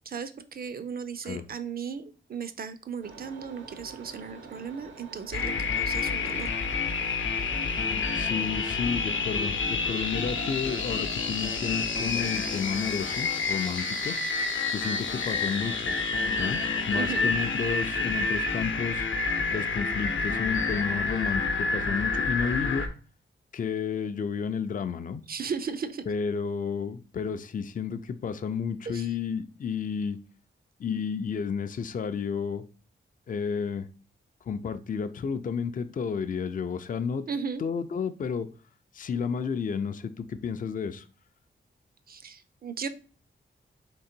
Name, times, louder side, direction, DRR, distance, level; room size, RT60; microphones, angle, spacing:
voice 1, 0.1-2.0 2.3-6.5 17.0-17.3 25.3-26.0 28.9-29.1 37.3-37.6 42.1-42.9, right 6 dB, 50° right, 12 dB, 0.5 m, -36 dB
sound 1, 3.0-19.8, right 4 dB, 75° right, 0.9 m, -48 dB
sound 2, 5.3-22.9, left 4 dB, 75° left, 0.7 m, -29 dB
voice 2, 8.1-14.2 14.7-16.0 16.4-16.6 16.9-19.1 19.5-22.9 23.5-25.2 26.1-30.2 30.8-32.6 33.3-33.9 34.5-37.3 37.6-38.5 38.9-41.1, left 6 dB, 40° left, 10 dB, 0.4 m, -31 dB
3.8 x 3.2 x 4.4 m, 0.38 s
wide cardioid pair, 125°, 20 cm